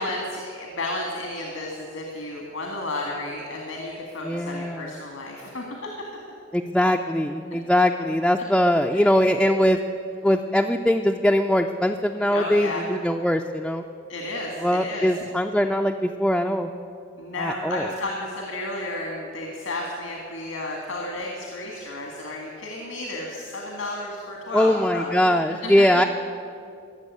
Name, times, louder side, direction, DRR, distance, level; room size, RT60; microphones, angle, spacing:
voice 1, 0.0-5.6 8.9-9.1 12.3-12.8 14.1-15.2 17.2-25.9, left 2 dB, 85° left, 0 dB, 1.8 m, -32 dB
voice 2, 4.2-4.9 6.5-9.8 10.2-13.8 14.6-16.7 17.4-17.9 24.5-26.0, equal, 5° left, 2 dB, 0.4 m, -21 dB
14.5 x 7.3 x 9.5 m, 2.4 s
head